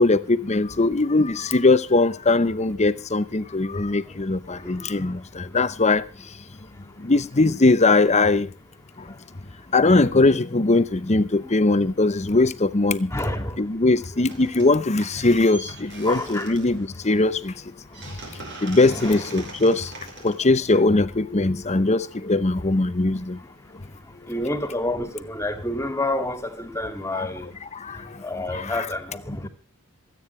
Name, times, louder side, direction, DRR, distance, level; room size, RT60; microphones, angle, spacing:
voice 1, 0.0-6.0 7.0-8.5 9.7-13.1 13.6-17.5 18.6-19.9 20.2-23.4 27.1-27.3 27.8-28.0 28.5-28.9, left 2 dB, 30° left, 0.8 m, -20 dB
voice 2, 4.5-5.1 11.4-11.5 13.1-13.6 16.1-16.5 18.9-19.2 24.3-27.5 27.9-29.5, left 1 dB, 15° left, 2.5 m, -29 dB
sound 1, 14.2-14.8 15.0-21.2, right 2 dB, 55° right, 5.5 m, -42 dB
27.0 x 9.4 x 3.3 m
head